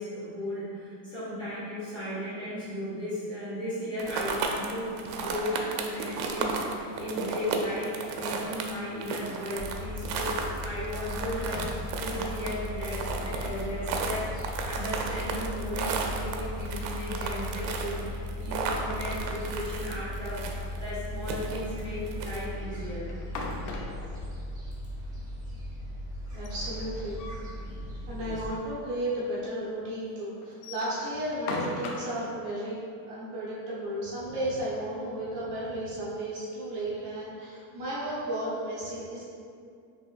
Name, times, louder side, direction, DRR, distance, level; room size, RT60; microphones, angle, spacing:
voice 1, 0.0-11.7 12.0-23.2 27.4-27.7 28.2-28.4, equal, 10° left, -13 dB, 1.4 m, -36 dB
sound 1, 4.0-22.5, right 4 dB, 80° right, 0.7 m, -34 dB
Gull seagull, 9.5-28.5, left 1 dB, 15° right, 1.0 m, -37 dB
sound 2, 23.1-24.2 26.3-27.5 27.9-28.0 28.3-28.4 29.1-29.2 30.4-32.2, left 3 dB, 65° left, 0.8 m, -38 dB
voice 2, 26.3-27.2 27.7-32.8 33.1-39.2, right 1 dB, 45° right, -8 dB, 1.1 m, -34 dB
5.5 x 3.1 x 2.5 m, 2.4 s
supercardioid pair, 155°, 49 cm